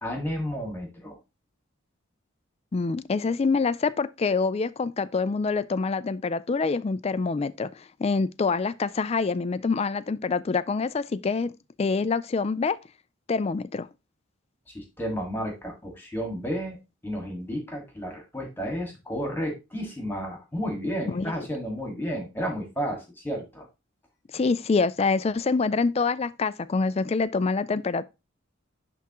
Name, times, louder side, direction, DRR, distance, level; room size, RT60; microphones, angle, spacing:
voice 1, 0.0-1.2 14.7-16.8 17.0-23.7, equal, 10° left, 1.9 m, -32 dB
voice 2, 2.7-7.7 8.0-12.8 13.3-13.9 21.1-21.3 24.3-28.0, left 4 dB, 30° left, 0.3 m, -26 dB
10.5 x 3.5 x 3.0 m
head